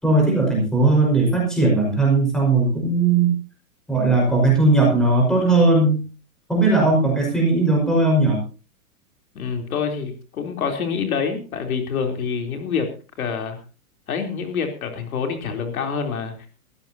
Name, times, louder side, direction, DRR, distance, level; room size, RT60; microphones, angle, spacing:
voice 1, 0.0-3.4 3.9-6.0 6.5-8.4, right 2 dB, ahead, -2 dB, 5.2 m, -18 dB
voice 2, 9.4-12.9 13.2-13.6 14.1-16.5, left 6 dB, 75° left, 5 dB, 3.6 m, -26 dB
21.0 x 15.0 x 2.8 m, 0.33 s
hypercardioid pair, 170°, 43 cm